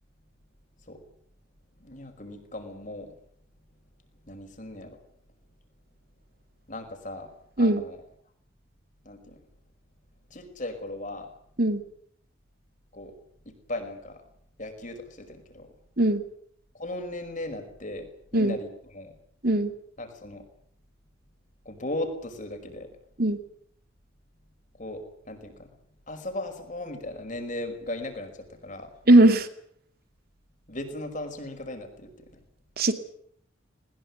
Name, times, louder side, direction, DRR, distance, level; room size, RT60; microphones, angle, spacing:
voice 1, 1.8-3.1 4.3-5.0 6.7-8.0 9.0-9.4 10.3-11.3 12.9-13.1 13.5-14.2 14.6-15.7 16.7-19.1 20.0-20.5 21.7-23.0 24.7-25.7 26.1-29.0 30.7-32.4, left 1 dB, 40° left, 6 dB, 5.4 m, -37 dB
voice 2, 29.1-29.5 32.8-32.9, right 1 dB, 50° right, 9 dB, 2.5 m, -19 dB
21.0 x 20.5 x 9.6 m, 0.66 s
head